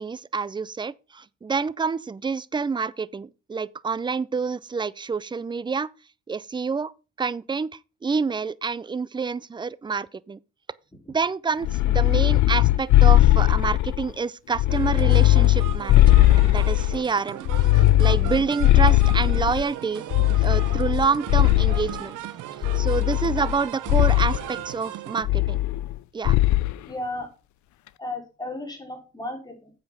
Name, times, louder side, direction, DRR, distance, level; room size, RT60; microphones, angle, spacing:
voice 1, 0.0-5.9 6.3-6.9 7.2-10.4 11.1-17.4 18.0-20.0 20.4-22.2 22.7-25.6 26.1-26.4, right 5 dB, 15° right, 0.4 m, -28 dB
sound 1, 11.6-14.1 14.5-17.0 17.5-19.6 20.1-22.0 22.6-23.6 23.9-24.4 25.2-26.0 26.3-26.7, left 16 dB, 70° left, 0.5 m, -19 dB
sound 2, 14.7-25.2, right 13 dB, 85° right, 0.9 m, -37 dB
voice 2, 26.9-27.3 28.0-29.7, left 2 dB, 15° left, 4.4 m, -34 dB
7.9 x 6.8 x 5.5 m
cardioid pair, 90°, 30 cm